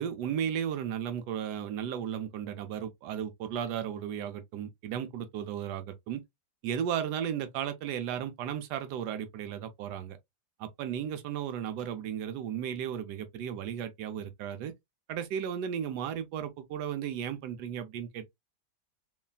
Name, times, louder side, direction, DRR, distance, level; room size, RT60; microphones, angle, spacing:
voice 1, 0.0-6.2 6.6-10.2 10.6-14.7 15.1-18.3, right 9 dB, 75° right, 1.1 m, -35 dB
3.2 x 2.3 x 2.2 m
omnidirectional pair, 1.8 m